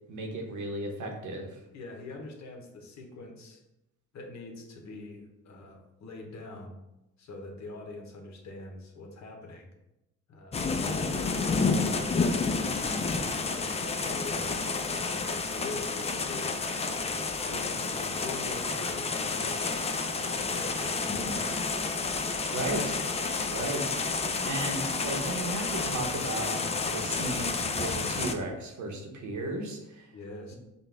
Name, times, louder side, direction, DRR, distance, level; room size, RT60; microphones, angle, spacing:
voice 1, 0.1-1.6 22.5-23.0 23.5-23.9 24.4-30.1, right 2 dB, 75° right, 2 dB, 1.0 m, -35 dB
voice 2, 1.7-3.6 4.1-6.8 7.2-9.7 10.3-10.6 11.1-12.4 13.5-17.2 17.5-19.6 20.2-21.8 30.1-30.6, left 2 dB, 65° left, 2 dB, 1.0 m, -43 dB
sound 1, 10.5-28.3, left 4 dB, 20° left, 0.4 m, -30 dB
5.3 x 2.4 x 3.3 m, 0.92 s
cardioid pair, 90°, 30 cm